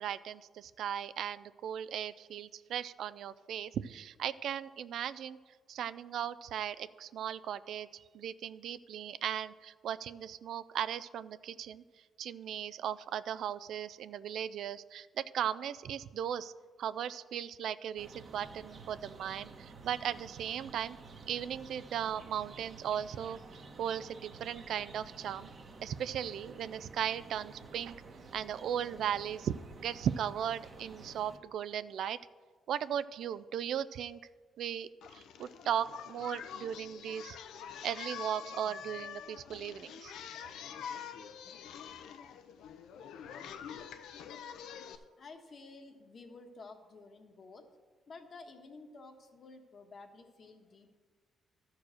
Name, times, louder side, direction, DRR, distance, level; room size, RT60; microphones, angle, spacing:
voice 1, 0.0-5.4 5.7-11.8 12.2-16.5 16.8-21.0 21.3-23.4 23.8-25.5 25.8-28.0 28.3-29.5 29.8-32.2 32.7-34.2 34.6-37.4 37.8-40.1 40.4-40.5, right 9 dB, 70° right, 15 dB, 0.3 m, -37 dB
sound 1, 18.0-31.4, right 3 dB, 45° right, 1.1 m, -51 dB
Singing, 35.0-45.0, left 8 dB, 80° left, 0.6 m, -46 dB
voice 2, 44.8-47.8 48.1-51.0, left 3 dB, 45° left, 5 dB, 1.3 m, -52 dB
13.0 x 4.7 x 6.3 m, 1.5 s
cardioid pair, 90°, 0 cm